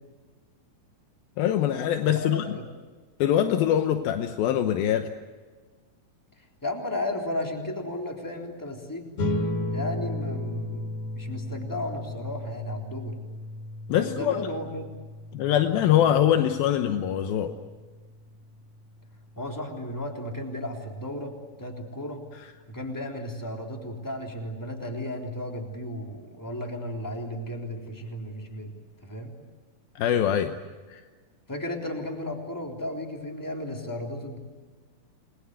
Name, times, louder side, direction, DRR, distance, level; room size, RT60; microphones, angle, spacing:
voice 1, 1.4-2.4 3.2-5.1 13.9-14.5 15.3-17.5 30.0-30.5 30.9-31.0, left 10 dB, 80° left, 7 dB, 2.9 m, -23 dB
voice 2, 2.0-2.7 6.6-9.1 9.7-10.8 11.1-13.2 13.9-14.9 19.4-21.3 21.6-22.2 22.7-28.7 29.0-29.4 31.5-34.4, left 1 dB, 5° left, 1 dB, 3.2 m, -34 dB
sound 1, 9.2-19.9, left 1 dB, 55° left, 3.6 m, -35 dB
29.5 x 22.0 x 8.2 m, 1.4 s
omnidirectional pair, 4.2 m